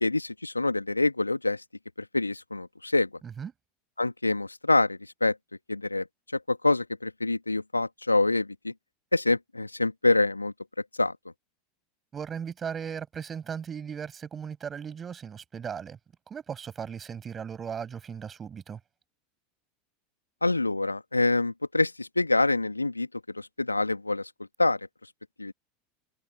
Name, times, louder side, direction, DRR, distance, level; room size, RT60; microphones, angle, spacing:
voice 1, 0.0-1.6 2.1-3.1 4.0-5.4 5.7-6.1 6.5-8.7 9.1-10.5 11.0-11.1 20.4-23.1 23.3-24.3 24.6-24.8 25.4-25.5, left 2 dB, 90° left, 2.0 m, -26 dB
voice 2, 12.1-16.0 16.3-18.8, right 7 dB, 25° right, 7.1 m, -37 dB
figure-of-eight pair, 80°, 0 cm